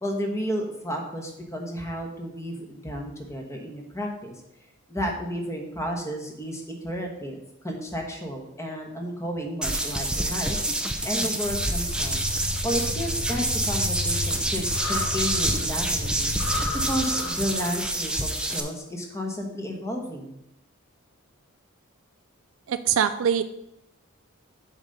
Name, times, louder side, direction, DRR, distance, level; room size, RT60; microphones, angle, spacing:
voice 1, 0.0-4.4 4.9-7.4 7.6-10.6 11.0-12.3 12.6-16.3 16.8-20.4, equal, 15° left, 1 dB, 1.2 m, -32 dB
sound 1, 9.6-18.6, right 1 dB, 5° right, 0.6 m, -27 dB
sound 2, 11.4-17.0, left 1 dB, 80° right, 1.3 m, -33 dB
Breathing, 13.5-15.7 16.0-16.1 16.3-18.0, left 2 dB, 75° left, 1.3 m, -34 dB
voice 2, 22.7-23.4, right 8 dB, 65° right, 11 dB, 0.3 m, -23 dB
7.1 x 4.2 x 6.5 m, 0.85 s
head